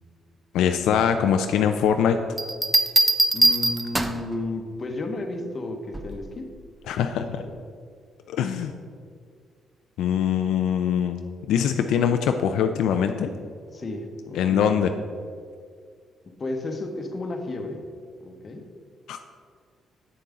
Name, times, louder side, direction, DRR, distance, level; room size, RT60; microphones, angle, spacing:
voice 1, 0.5-2.2 6.9-7.4 8.3-8.7 10.0-11.2 11.5-13.3 14.3-14.9 19.1-19.2, left 8 dB, 85° left, 6 dB, 0.3 m, -22 dB
sound 1, 2.4-4.3 5.9-6.3, right 1 dB, 15° right, 0.5 m, -21 dB
voice 2, 3.3-6.5 7.2-7.5 13.7-14.7 16.4-17.8 18.2-18.7, left 2 dB, 35° left, 4 dB, 0.9 m, -33 dB
7.9 x 6.8 x 3.7 m, 2.1 s
cardioid pair, 90°, 0 cm